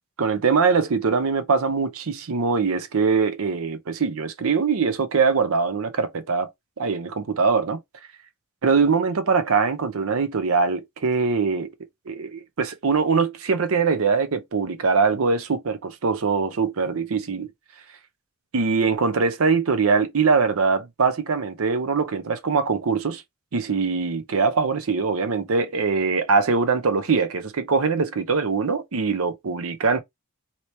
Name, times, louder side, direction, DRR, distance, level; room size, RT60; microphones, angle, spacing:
voice 1, 0.2-6.5 6.8-7.8 8.6-11.7 12.1-17.5 18.5-23.2 23.5-30.0, right 5 dB, 65° right, 0.6 m, -22 dB
2.9 x 2.9 x 3.2 m
head